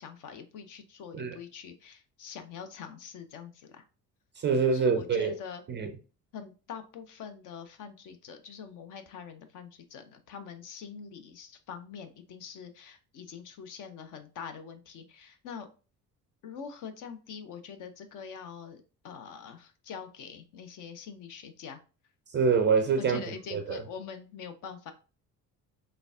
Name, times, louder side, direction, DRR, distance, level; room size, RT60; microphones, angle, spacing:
voice 1, 0.0-3.8 4.7-5.6 6.3-15.7 16.4-21.8 23.0-24.9, left 6 dB, 40° left, 0.6 m, -44 dB
voice 2, 4.4-5.3 5.7-5.9 22.3-23.2 23.5-23.8, right 5 dB, 25° right, 0.4 m, -25 dB
4.0 x 3.2 x 2.3 m
figure-of-eight pair, 50°, 49 cm